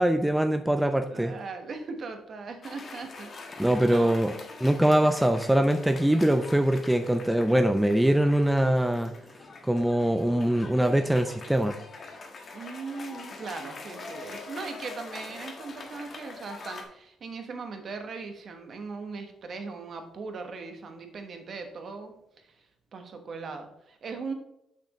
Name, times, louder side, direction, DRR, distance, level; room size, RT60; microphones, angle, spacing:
voice 1, 0.0-1.3 3.6-4.3 4.6-9.1 9.7-11.8, right 1 dB, 5° right, 7 dB, 0.4 m, -23 dB
voice 2, 0.8-4.3 12.5-22.5 22.9-24.3, right 4 dB, 55° right, 6 dB, 1.2 m, -39 dB
Cheering / Applause, 2.6-16.8, left 3 dB, 45° left, 1.3 m, -44 dB
6.8 x 6.0 x 3.0 m, 0.81 s
cardioid pair, 90°, 0 cm